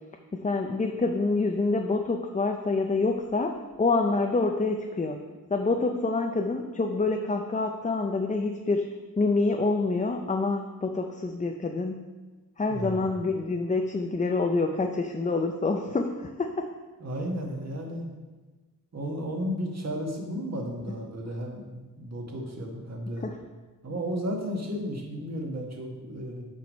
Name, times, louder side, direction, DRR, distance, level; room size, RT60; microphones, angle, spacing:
voice 1, 0.3-5.2 5.5-8.9 9.2-12.1 12.6-16.5 23.2-23.4, left 3 dB, 20° left, 3 dB, 0.4 m, -27 dB
voice 2, 12.7-13.0 17.0-18.0 18.9-23.3 23.8-26.5, equal, 45° right, 0 dB, 1.5 m, -33 dB
7.1 x 4.7 x 5.3 m, 1.3 s
wide cardioid pair, 90°, 36 cm